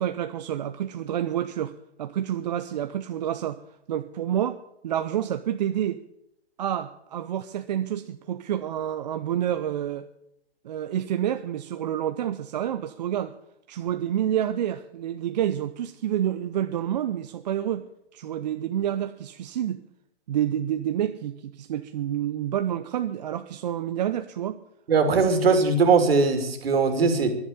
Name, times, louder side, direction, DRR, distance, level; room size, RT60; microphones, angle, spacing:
voice 1, 0.0-3.6 3.9-4.6 4.8-6.0 6.6-10.1 10.6-13.3 13.7-17.9 18.1-19.8 20.3-24.6 25.1-25.2, right 10 dB, 40° right, 9 dB, 0.6 m, -28 dB
voice 2, 24.9-27.3, right 4 dB, 60° right, 7 dB, 2.8 m, -20 dB
11.0 x 10.5 x 8.9 m, 0.80 s
figure-of-eight pair, 135°, 33 cm